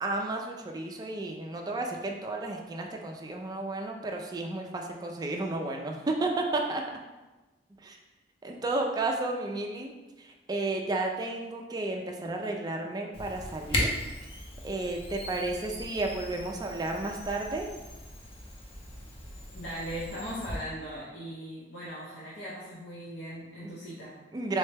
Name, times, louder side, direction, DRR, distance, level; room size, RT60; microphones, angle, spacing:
voice 1, 0.0-6.8 7.8-8.0 8.4-9.9 10.2-13.9 14.6-17.7 23.6-23.7 24.3-24.6, right 2 dB, 25° right, 1 dB, 0.3 m, -32 dB
Camera, 13.1-20.6, left 1 dB, 35° left, 0.6 m, -37 dB
voice 2, 19.5-24.2, equal, 80° left, -8 dB, 0.7 m, -39 dB
3.7 x 2.1 x 3.3 m, 1.1 s
head